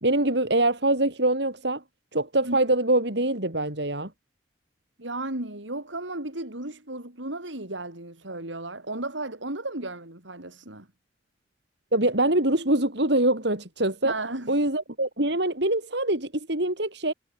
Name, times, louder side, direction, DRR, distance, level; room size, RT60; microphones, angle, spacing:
voice 1, 0.0-1.8 2.1-4.1 11.9-14.1 14.5-17.1, right 1 dB, 65° right, 4.2 m, -24 dB
voice 2, 5.0-10.9 14.0-14.7, right 2 dB, 80° right, 5.1 m, -34 dB
head